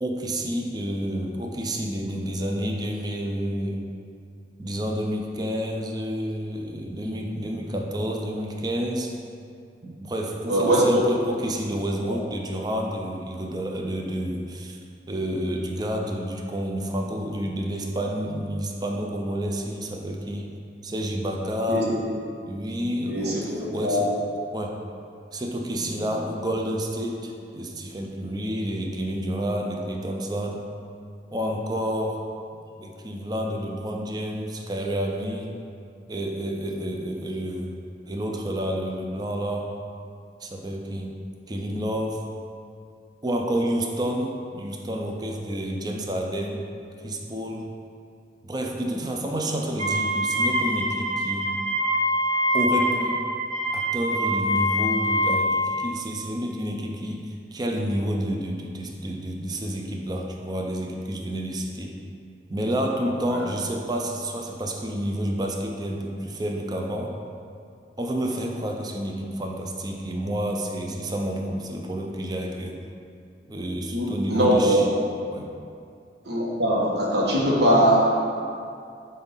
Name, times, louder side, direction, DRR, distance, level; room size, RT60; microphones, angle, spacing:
voice 1, 0.0-3.8 4.6-9.1 9.8-14.8 15.1-20.5 20.8-21.9 22.5-24.1 24.5-24.8 25.3-30.6 31.3-32.2 32.8-35.6 36.1-37.8 38.1-39.7 40.4-41.1 41.5-42.2 43.2-46.7 47.0-47.7 48.4-51.5 52.5-53.2 53.7-62.0 62.5-67.2 68.0-72.8 73.5-74.9 75.2-75.5, equal, 25° right, 1 dB, 0.5 m, -29 dB
voice 2, 10.5-11.0 12.1-12.2 21.7-21.8 23.0-24.1 25.8-25.9 63.3-63.4 73.9-74.8 76.2-78.2, equal, 70° right, -4 dB, 1.3 m, -21 dB
Wind instrument woodwind instrument, 49.8-55.7, equal, 40° right, 0.9 m, -24 dB
7.5 x 2.7 x 5.5 m, 2.4 s
head